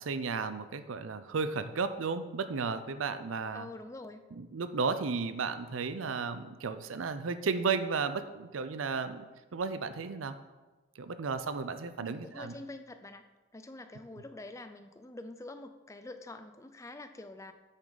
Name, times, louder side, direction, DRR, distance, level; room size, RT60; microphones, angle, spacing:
voice 1, 0.0-3.7 4.3-10.4 11.0-12.5, right 5 dB, 90° right, 11 dB, 0.5 m, -34 dB
voice 2, 3.5-4.2 12.0-13.2 13.5-17.5, left 2 dB, 15° left, 9 dB, 0.4 m, -46 dB
8.5 x 6.3 x 4.0 m, 1.2 s
head